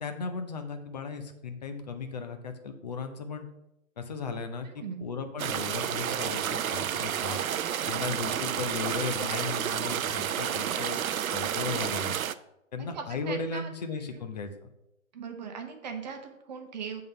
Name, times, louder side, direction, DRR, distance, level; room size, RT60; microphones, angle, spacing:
voice 1, 0.0-3.5 4.0-7.4 7.9-11.0 11.3-12.2 12.7-14.7, left 4 dB, 30° left, 7 dB, 0.6 m, -36 dB
voice 2, 4.6-5.1 9.8-9.9 12.8-13.7 14.1-14.2 15.1-17.0, right 6 dB, 30° right, 4 dB, 0.9 m, -39 dB
sound 1, 5.4-12.3, right 9 dB, 90° right, 0.5 m, -30 dB
7.7 x 3.8 x 5.5 m, 0.87 s
hypercardioid pair, 150°, 40 cm